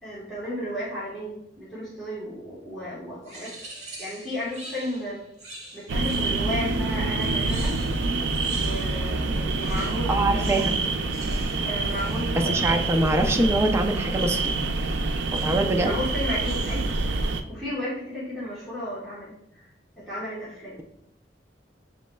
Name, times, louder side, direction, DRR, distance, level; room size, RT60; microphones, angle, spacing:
voice 1, 0.0-3.6 4.0-5.2 5.7-7.7 8.5-10.5 11.6-12.9 15.7-16.9 17.5-19.6 20.0-20.7, left 1 dB, ahead, -11 dB, 1.1 m, -34 dB
sound 1, 3.2-6.6 7.2-9.2 9.5-13.3 14.3-14.7 15.3-15.8 16.2-17.0, right 2 dB, 40° right, 1.3 m, -45 dB
sound 2, 5.9-17.4, right 3 dB, 85° right, 0.4 m, -26 dB
voice 2, 9.8-10.8 12.4-14.5 15.3-15.9, right 1 dB, 15° right, 4 dB, 0.4 m, -24 dB
6.4 x 3.1 x 2.2 m, 0.75 s
head